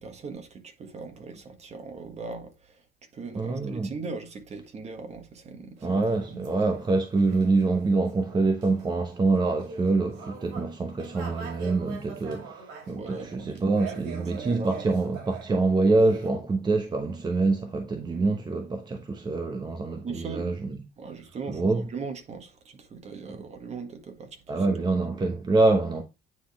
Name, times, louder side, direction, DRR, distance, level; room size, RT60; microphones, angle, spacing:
voice 1, 0.0-2.5 3.1-5.7 6.3-6.4 12.9-13.5 14.3-14.7 20.0-20.6 21.0-22.5 22.8-24.4 24.7-24.8, right 4 dB, 40° right, 1.7 m, -39 dB
voice 2, 3.4-3.9 5.8-20.9 21.5-21.9 23.3-23.4 24.5-26.0, right 3 dB, 25° right, 0.9 m, -25 dB
sound 1, 5.8-15.5 15.9-16.3, right 5 dB, 90° right, 2.7 m, -44 dB
9.3 x 3.9 x 3.5 m
cardioid pair, 110°, 17 cm